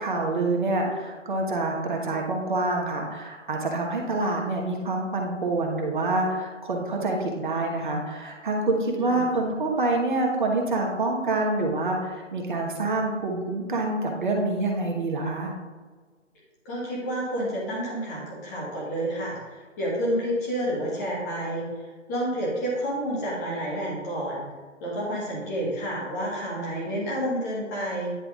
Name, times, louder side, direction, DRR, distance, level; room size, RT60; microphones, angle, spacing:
voice 1, 0.0-15.5, right 2 dB, 40° right, 1 dB, 1.2 m, -26 dB
voice 2, 16.6-21.7 22.1-24.5 24.8-28.2, equal, 15° left, -5 dB, 1.3 m, -29 dB
9.8 x 3.4 x 3.6 m, 1.4 s
hypercardioid pair, 160°, 38 cm